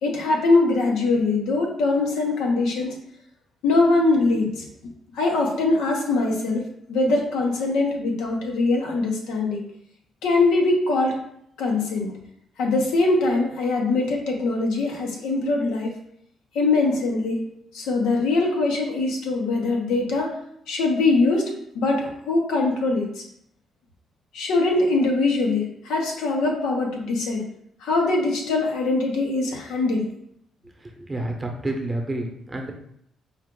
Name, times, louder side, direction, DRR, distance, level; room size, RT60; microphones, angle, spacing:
voice 1, 0.0-2.9 3.6-4.7 5.1-6.6 6.9-9.6 10.2-11.2 11.6-12.1 12.6-15.9 16.5-17.4 17.7-20.3 20.7-23.2 24.3-27.4 27.8-30.1, left 3 dB, 90° left, 0 dB, 1.0 m, -22 dB
voice 2, 30.8-32.7, right 1 dB, 15° right, 2 dB, 0.8 m, -29 dB
4.4 x 2.4 x 3.7 m, 0.72 s
cardioid pair, 90°, 0 cm